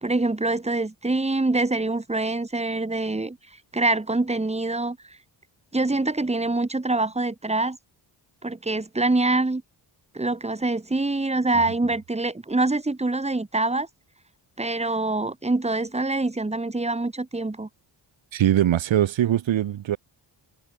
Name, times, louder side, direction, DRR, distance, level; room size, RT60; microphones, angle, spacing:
voice 1, 0.0-3.4 3.7-5.2 5.7-7.8 8.4-9.6 10.1-13.9 14.6-17.7, right 2 dB, 15° right, 2.0 m, -25 dB
voice 2, 18.3-20.0, right 11 dB, 80° right, 1.8 m, -21 dB
cardioid pair, 90°, 45 cm